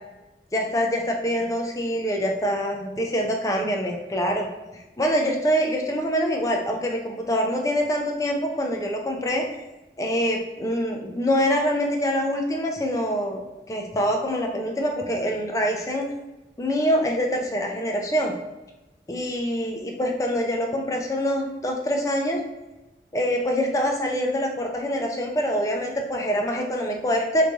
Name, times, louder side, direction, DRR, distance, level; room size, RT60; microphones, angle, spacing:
voice 1, 0.5-4.5 4.7-9.5 10.0-16.1 16.6-18.3 19.1-22.4 23.1-27.5, equal, 20° left, 1 dB, 0.4 m, -25 dB
3.2 x 2.6 x 3.4 m, 1.1 s
head